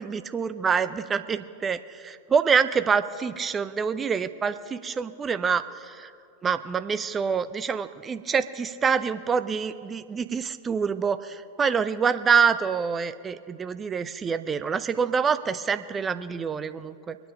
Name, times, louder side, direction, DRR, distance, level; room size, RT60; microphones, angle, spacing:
voice 1, 0.0-6.1 6.4-17.2, right 6 dB, 20° right, 13 dB, 0.5 m, -26 dB
22.5 x 9.1 x 5.3 m, 2.5 s
figure-of-eight pair, 90°, 0 cm